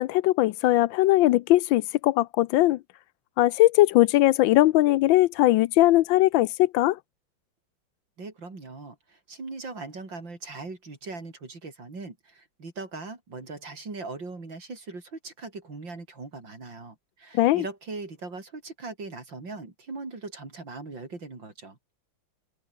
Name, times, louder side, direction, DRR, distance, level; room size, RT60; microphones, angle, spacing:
voice 1, 0.0-2.8 3.4-7.0 17.3-17.6, left 16 dB, 80° left, 1.3 m, -20 dB
voice 2, 8.2-21.8, right 3 dB, 65° right, 5.5 m, -40 dB
omnidirectional pair, 2.2 m